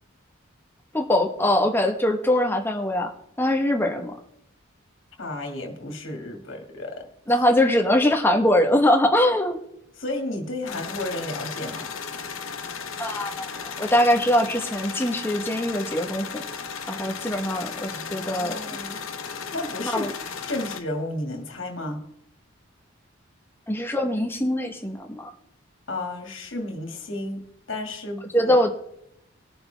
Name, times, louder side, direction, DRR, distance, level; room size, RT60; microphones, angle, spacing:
voice 1, 0.9-3.1 3.4-4.2 7.3-9.6 13.0-16.4 16.9-18.6 19.9-20.1 23.7-25.3 28.3-28.7, left 1 dB, 10° left, 4 dB, 1.1 m, -22 dB
voice 2, 5.2-7.1 10.0-11.9 17.9-19.0 19.5-20.1 20.5-22.0 25.9-28.6, left 1 dB, 65° left, 3 dB, 2.1 m, -32 dB
sound 1, 10.7-20.8, left 6 dB, 90° left, 1.1 m, -35 dB
20.0 x 6.7 x 3.4 m, 0.77 s
head